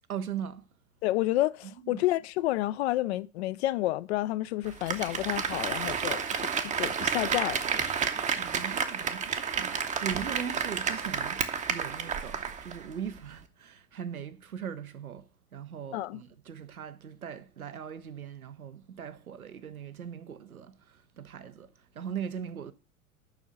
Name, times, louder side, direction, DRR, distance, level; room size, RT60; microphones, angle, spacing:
voice 1, 0.1-0.7 1.6-2.1 8.3-11.4 11.7-22.7, right 8 dB, 85° right, 0.8 m, -40 dB
voice 2, 1.0-6.5 6.7-7.6 15.9-16.2, left 16 dB, 50° left, 0.5 m, -30 dB
Applause, 4.7-12.9 13.2-13.3, right 6 dB, 15° right, 0.7 m, -31 dB
7.1 x 5.5 x 6.6 m
figure-of-eight pair, 85°, 42 cm